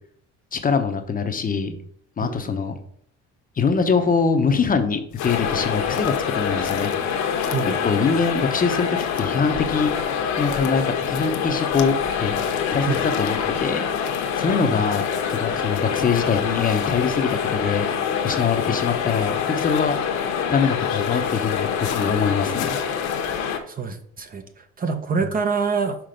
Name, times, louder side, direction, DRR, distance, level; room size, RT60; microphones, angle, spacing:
voice 1, 0.5-1.8 2.2-2.7 3.6-6.9 7.8-9.9 10.4-12.4 12.7-13.9 14.3-15.0 15.3-17.9 18.2-20.0 20.5-22.8, left 5 dB, 30° left, 6 dB, 0.8 m, -23 dB
voice 2, 2.2-2.6 7.5-7.8 12.9-13.0 14.6-14.7 23.7-26.0, right 5 dB, 30° right, 7 dB, 0.7 m, -26 dB
sound 1, 5.1-23.4, left 8 dB, 90° left, 0.8 m, -42 dB
sound 2, 5.2-23.6, left 7 dB, 65° left, 1.2 m, -25 dB
6.0 x 4.3 x 5.1 m, 0.66 s
cardioid pair, 125°, 30 cm